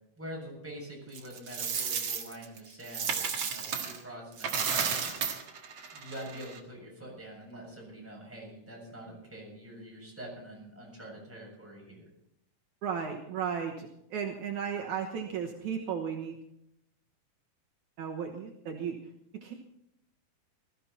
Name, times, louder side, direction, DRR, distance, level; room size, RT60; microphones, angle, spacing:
voice 1, 0.2-5.0 5.9-12.1, right 1 dB, 5° right, -3 dB, 7.2 m, -45 dB
Coin (dropping), 1.2-4.0 4.3-6.6, right 6 dB, 50° right, 2.5 m, -33 dB
voice 2, 12.8-16.4 18.0-19.0 19.4-19.5, right 7 dB, 70° right, 1 dB, 2.6 m, -35 dB
20.5 x 14.0 x 4.3 m, 0.76 s
omnidirectional pair, 3.8 m